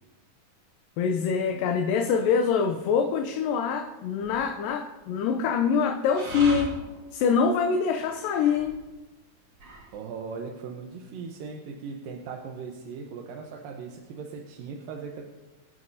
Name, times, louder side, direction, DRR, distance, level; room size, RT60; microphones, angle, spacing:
voice 1, 1.0-6.8 7.1-8.8, left 6 dB, 80° left, 5 dB, 2.4 m, -25 dB
sound 1, 2.7-3.1 4.1-4.9 6.1-8.9 9.4-10.0, right 1 dB, 60° right, 3.6 m, -41 dB
voice 2, 9.9-15.2, right 5 dB, 80° right, 1 dB, 2.7 m, -38 dB
24.5 x 9.3 x 2.8 m, 1.1 s
omnidirectional pair, 4.0 m